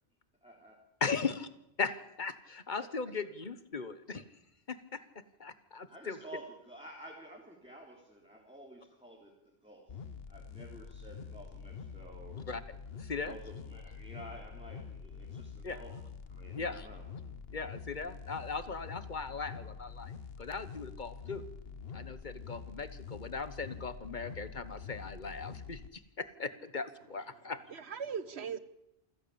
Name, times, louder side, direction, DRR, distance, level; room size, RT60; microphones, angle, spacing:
voice 1, 0.4-0.8 2.8-3.1 5.9-9.3 9.6-12.4 13.2-16.0 16.3-17.0, right 1 dB, 5° right, -3 dB, 3.7 m, -51 dB
voice 2, 1.0-1.5 1.8-4.2 4.7-6.2 12.5-12.6 13.0-13.4 15.6-15.8 16.5-16.9 17.5-20.1 20.4-21.5 21.9-27.6, left 4 dB, 50° left, 14 dB, 1.4 m, -38 dB
sound 1, 9.9-25.9, left 6 dB, 70° left, 1.3 m, -46 dB
voice 3, 27.3-28.6, right 7 dB, 90° right, 15 dB, 1.5 m, -40 dB
27.5 x 15.5 x 8.7 m, 0.86 s
omnidirectional pair, 1.1 m